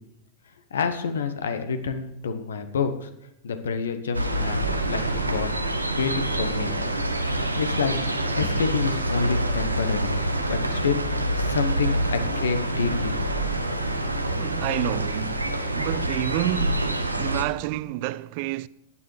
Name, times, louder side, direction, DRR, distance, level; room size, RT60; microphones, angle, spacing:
voice 1, 0.7-3.1 3.4-4.6 4.8-5.5 5.9-6.7 7.5-10.1 10.5-13.1, left 5 dB, 65° left, 1.1 m, -28 dB
sound 1, 4.1-17.4, right 1 dB, 85° right, 1.0 m, -26 dB
voice 2, 14.4-18.7, right 17 dB, 45° right, 0.4 m, -29 dB
15.5 x 9.8 x 3.3 m
figure-of-eight pair, 90°, 0 cm